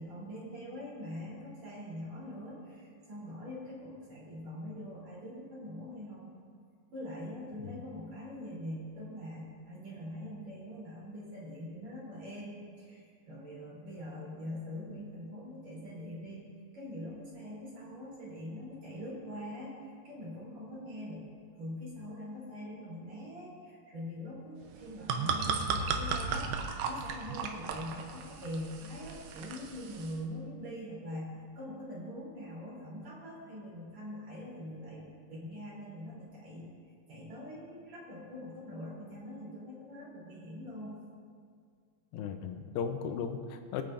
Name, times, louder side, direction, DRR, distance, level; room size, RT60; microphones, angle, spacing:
voice 1, 0.0-6.4 6.9-19.7 20.0-21.3 21.6-26.5 26.9-36.7 37.1-41.0, left 1 dB, 50° right, -7 dB, 4.6 m, -43 dB
sound 1, 24.7-30.2, right 5 dB, 80° right, 2.5 m, -35 dB
voice 2, 42.1-43.8, left 6 dB, 80° left, 6 dB, 2.5 m, -36 dB
22.5 x 8.8 x 2.6 m, 2.1 s
omnidirectional pair, 4.1 m